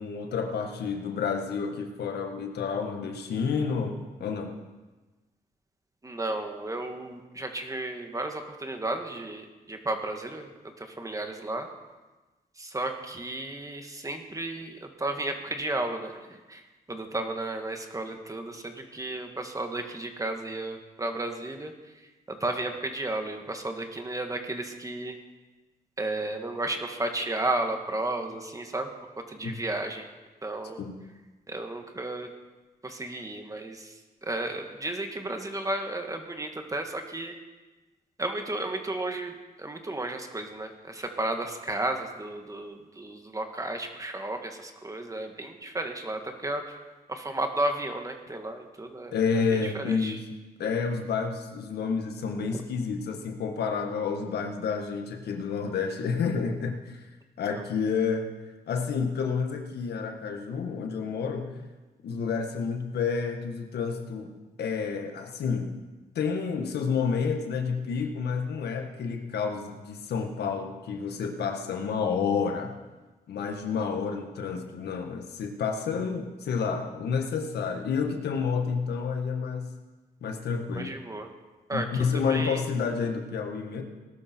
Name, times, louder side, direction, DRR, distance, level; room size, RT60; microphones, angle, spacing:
voice 1, 0.0-4.5 29.4-29.5 30.8-31.0 49.1-50.3 50.6-57.0 57.4-58.3 58.7-61.5 62.0-65.7 66.1-72.7 73.3-79.7 80.2-81.0 81.7-83.8, left 5 dB, 80° left, 4 dB, 1.8 m, -29 dB
voice 2, 6.0-10.5 11.0-11.7 12.6-14.7 15.0-16.1 16.5-16.6 16.9-21.7 22.3-25.1 26.0-28.9 29.3-30.1 30.4-30.8 31.5-32.3 32.8-33.9 34.2-37.3 38.2-39.3 39.6-46.8 47.1-49.2 49.9-50.2 80.8-81.3 81.7-81.9 82.3-82.6, right 2 dB, 20° right, 4 dB, 1.9 m, -33 dB
19.0 x 12.0 x 4.6 m, 1.2 s
cardioid pair, 90°, 17 cm